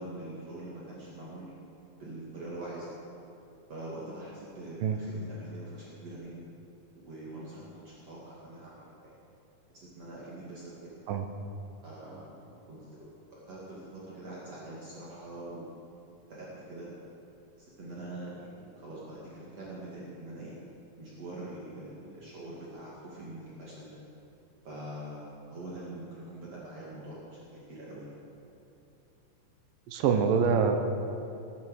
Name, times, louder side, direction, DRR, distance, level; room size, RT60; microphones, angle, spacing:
voice 1, 0.0-1.6 2.0-2.9 3.7-6.5 6.9-9.1 9.7-10.9 11.8-15.8 16.3-16.9 17.6-20.5 21.0-24.0 24.6-28.1, right 1 dB, 50° right, -7 dB, 3.2 m, -44 dB
voice 2, 29.9-30.9, right 6 dB, 75° right, 6 dB, 2.6 m, -25 dB
20.0 x 9.4 x 6.5 m, 2.8 s
omnidirectional pair, 4.0 m